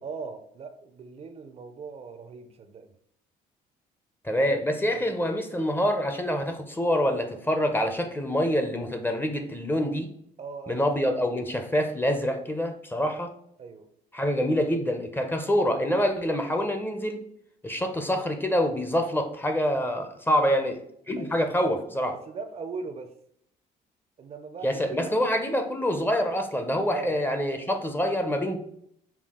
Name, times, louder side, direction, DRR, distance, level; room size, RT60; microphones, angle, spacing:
voice 1, 0.0-2.9 4.9-5.2 10.4-11.3 12.2-12.4 13.6-13.9 20.3-20.6 21.2-21.4 22.1-23.1 24.2-25.1 26.9-27.2, right 5 dB, 40° right, 8 dB, 0.5 m, -39 dB
voice 2, 4.2-10.1 10.7-13.3 14.1-17.2 17.6-20.7 21.1-22.1 24.6-28.6, equal, 10° left, 6 dB, 0.5 m, -26 dB
5.6 x 2.3 x 3.5 m, 0.70 s
cardioid pair, 110°, 17 cm